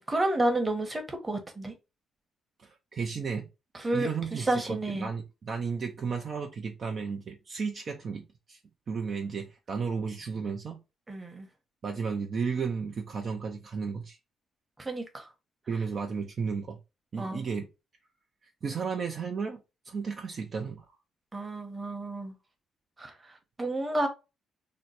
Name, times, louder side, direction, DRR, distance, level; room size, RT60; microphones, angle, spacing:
voice 1, 0.0-1.7 3.7-5.1 11.1-11.5 14.8-15.3 17.2-17.5 21.3-22.3 23.0-24.1, right 1 dB, 20° right, 1.0 m, -31 dB
voice 2, 2.6-3.5 3.9-8.6 8.9-10.8 11.8-14.2 15.7-16.8 17.1-17.7 18.6-19.6 19.8-20.9, right 5 dB, 50° right, 0.6 m, -33 dB
3.0 x 2.1 x 4.0 m
cardioid pair, 80°, 0 cm